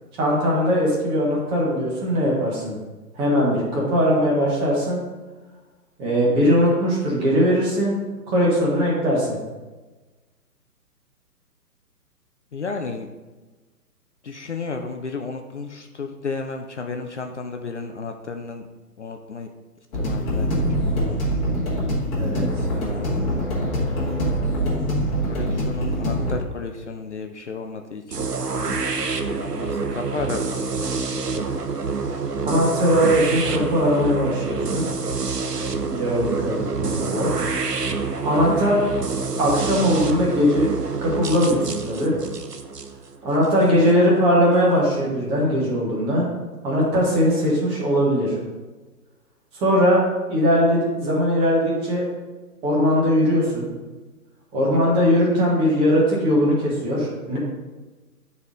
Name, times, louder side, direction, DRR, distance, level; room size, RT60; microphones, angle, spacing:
voice 1, 0.2-2.8 3.1-5.0 6.0-7.9 8.3-9.4 22.2-22.5 32.5-34.8 35.8-37.3 38.2-38.8 39.4-40.7 41.0-42.1 43.2-46.3 46.6-48.4 49.5-50.0 50.3-52.0 52.6-53.7 54.5-57.4, equal, 10° right, -4 dB, 1.1 m, -20 dB
voice 2, 12.5-13.1 14.2-18.7 19.0-19.5 19.9-20.7 21.1-21.2 22.7-24.0 25.3-28.3 28.6-30.9 36.6-37.1 39.2-39.5 43.7-44.0 54.6-54.9, left 4 dB, 50° left, 5 dB, 0.5 m, -33 dB
sound 1, 19.9-26.3, equal, 20° left, 1.4 m, -24 dB
sound 2, 28.1-43.9, right 4 dB, 75° right, 0.8 m, -27 dB
9.4 x 4.2 x 3.7 m, 1.2 s
figure-of-eight pair, 135°, 48 cm